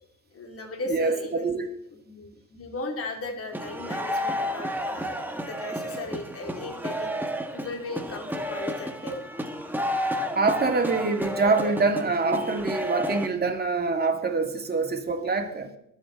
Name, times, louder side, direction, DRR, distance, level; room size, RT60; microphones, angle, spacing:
voice 1, 0.3-1.6 1.9-5.2 5.5-7.1 7.5-9.2, left 2 dB, 50° left, 2 dB, 2.9 m, -36 dB
voice 2, 0.9-1.7 10.3-15.7, right 3 dB, 30° right, 3 dB, 2.4 m, -25 dB
sound 1, 3.5-13.3, equal, 5° right, 1.6 m, -31 dB
22.5 x 8.8 x 4.0 m, 0.76 s
cardioid pair, 90°, 30 cm